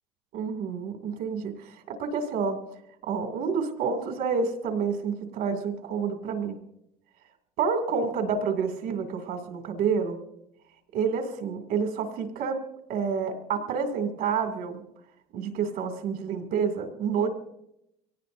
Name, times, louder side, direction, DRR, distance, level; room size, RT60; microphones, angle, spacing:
voice 1, 0.3-2.6 3.0-6.6 7.6-10.2 10.9-12.6 12.9-14.8 15.3-17.3, right 6 dB, 75° right, 5 dB, 2.4 m, -29 dB
24.0 x 18.0 x 2.6 m, 0.82 s
cardioid pair, 115°, 16 cm